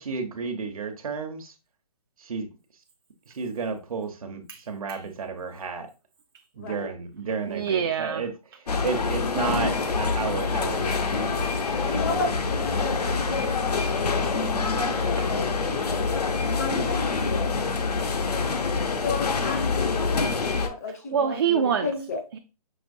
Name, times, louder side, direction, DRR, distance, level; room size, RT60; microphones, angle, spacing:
voice 1, 0.0-1.5 2.2-2.5 3.3-5.9 6.5-8.3 8.8-11.0 11.8-12.0, right 5 dB, 65° right, 1.0 m, -32 dB
voice 2, 4.5-5.0 7.5-8.2 11.1-11.5 18.8-18.9 21.1-21.9 22.3-22.4, right 7 dB, 40° right, 0.4 m, -27 dB
voice 3, 6.6-6.9 11.7-14.3 14.7-16.0 16.5-17.6 18.8-22.2, left 3 dB, 25° left, 0.6 m, -33 dB
sound 1, 8.7-20.7, left 4 dB, 80° left, 0.8 m, -26 dB
6.0 x 3.0 x 2.6 m
hypercardioid pair, 160°, 20 cm